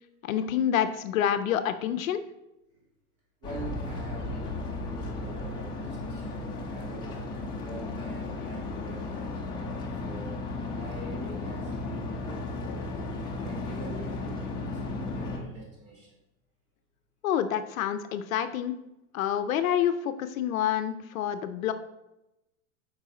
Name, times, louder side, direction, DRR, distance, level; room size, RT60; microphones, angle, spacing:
voice 1, 0.2-2.2 17.2-18.8 19.1-21.7, left 9 dB, 65° left, 10 dB, 0.6 m, -27 dB
sound 1, 3.4-15.4, left 2 dB, 10° left, 0.7 m, -35 dB
voice 2, 3.4-7.2 7.6-10.4 10.7-12.9 13.4-16.2, right 2 dB, 35° right, -3 dB, 2.5 m, -45 dB
8.0 x 4.7 x 3.8 m, 0.92 s
supercardioid pair, 155°, 44 cm